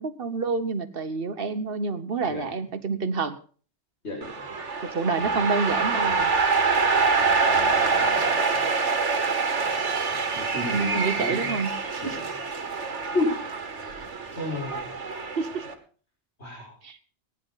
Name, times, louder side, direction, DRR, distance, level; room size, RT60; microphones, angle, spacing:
voice 1, 0.0-3.4 4.9-6.3 10.7-12.2 15.4-15.7 16.8-17.0, right 4 dB, 55° right, 11 dB, 1.3 m, -28 dB
sound 1, 4.2-15.7, right 4 dB, 85° right, 1.8 m, -25 dB
voice 2, 7.2-8.4 10.3-11.6 12.0-12.2 13.1-13.4 14.4-14.8 16.4-16.7, left 2 dB, 70° left, 0 dB, 6.0 m, -32 dB
19.0 x 10.5 x 4.1 m, 0.41 s
omnidirectional pair, 1.2 m